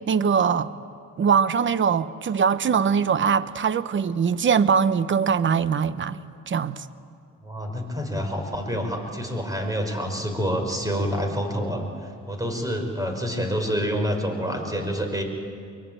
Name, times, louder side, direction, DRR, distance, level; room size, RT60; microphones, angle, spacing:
voice 1, 0.1-0.7 1.2-6.9, right 6 dB, 40° right, 0.9 m, -22 dB
voice 2, 7.4-15.2, equal, 10° right, 5.4 m, -27 dB
23.5 x 23.0 x 8.9 m
cardioid pair, 90°, 30 cm